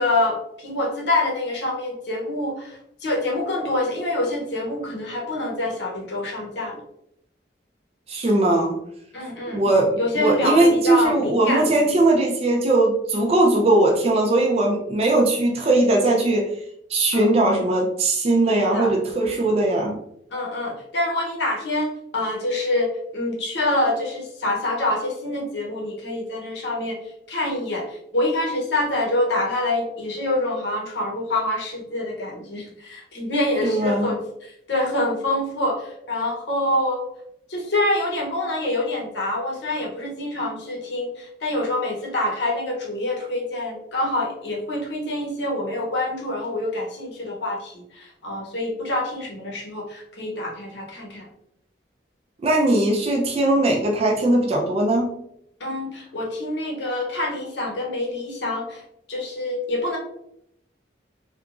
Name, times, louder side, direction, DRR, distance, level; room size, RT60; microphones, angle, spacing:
voice 1, 0.0-6.8 9.1-9.6 10.0-11.7 17.1-17.3 18.4-18.9 20.3-37.0 37.5-51.3 55.6-58.8 59.1-60.0, left 1 dB, 70° left, -1 dB, 0.7 m, -26 dB
voice 2, 8.1-8.8 9.5-16.5 16.9-20.0 33.6-34.1 52.4-55.1, right 2 dB, 35° right, -1 dB, 0.4 m, -19 dB
2.8 x 2.3 x 2.4 m, 0.74 s
head